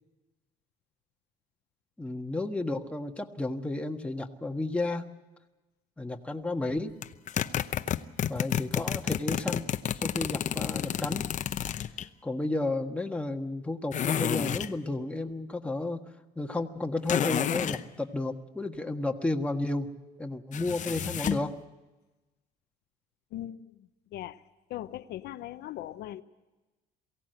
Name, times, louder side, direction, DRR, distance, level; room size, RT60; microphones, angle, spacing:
voice 1, 2.0-5.0 6.0-7.0 8.3-9.7 10.0-11.3 12.2-16.0 16.4-19.9 20.2-21.6, left 2 dB, 5° left, 1.5 m, -32 dB
sound 1, 7.0-12.1 13.9-14.7 17.1-17.8 20.5-21.5, left 9 dB, 45° left, 0.8 m, -30 dB
voice 2, 23.3-24.4 24.7-26.2, left 13 dB, 75° left, 0.8 m, -40 dB
23.0 x 16.5 x 7.9 m
cardioid pair, 110°, 17 cm